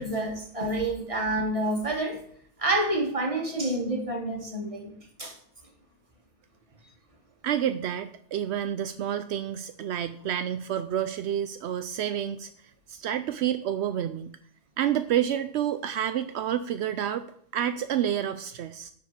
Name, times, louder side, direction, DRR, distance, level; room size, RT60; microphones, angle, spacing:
voice 1, 0.0-2.2 2.6-4.9 5.2-5.4, right 1 dB, 20° right, 1.9 m, -28 dB
voice 2, 7.4-12.5 12.9-14.3 14.8-17.2 17.5-18.9, right 10 dB, 70° right, 0.6 m, -29 dB
11.0 x 4.8 x 6.8 m
omnidirectional pair, 1.6 m